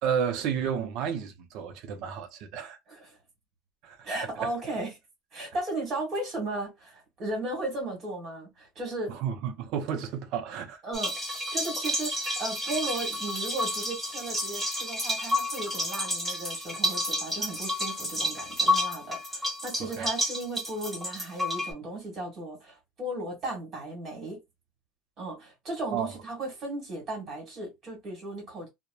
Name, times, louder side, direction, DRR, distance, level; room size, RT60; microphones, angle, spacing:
voice 1, 0.0-2.8 3.8-4.0 4.4-4.5 9.1-10.8 19.8-20.1 25.9-26.1, right 7 dB, 50° right, 0.5 m, -31 dB
voice 2, 4.0-5.0 5.3-9.2 10.8-11.3 11.5-24.4 25.2-28.7, right 2 dB, 30° right, 1.5 m, -35 dB
sound 1, 10.9-21.7, left 1 dB, 5° right, 1.0 m, -30 dB
2.9 x 2.0 x 2.2 m
cardioid pair, 160°, 0 cm